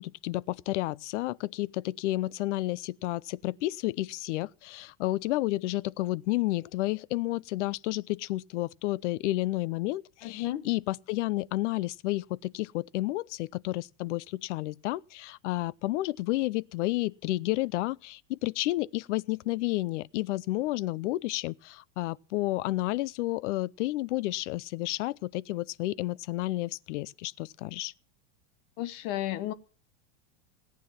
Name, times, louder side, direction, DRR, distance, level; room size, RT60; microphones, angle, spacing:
voice 1, 0.0-27.9, left 18 dB, 75° left, 0.6 m, -31 dB
voice 2, 10.2-10.7 28.8-29.5, left 14 dB, 45° left, 1.1 m, -33 dB
17.5 x 9.2 x 5.8 m
supercardioid pair, 165°, 36 cm